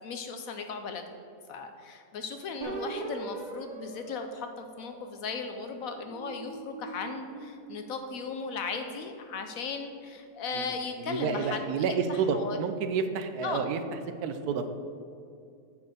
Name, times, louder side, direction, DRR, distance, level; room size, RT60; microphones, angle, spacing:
voice 1, 0.0-1.0 1.5-11.6 11.9-12.6 13.4-13.6, left 5 dB, 65° left, 6 dB, 0.9 m, -37 dB
sound 1, 2.6-5.3 5.9-8.4, right 3 dB, 50° right, 0.5 m, -42 dB
voice 2, 10.5-13.8 14.2-14.7, right 5 dB, 70° right, 8 dB, 1.1 m, -30 dB
8.3 x 4.5 x 6.5 m, 2.4 s
omnidirectional pair, 1.8 m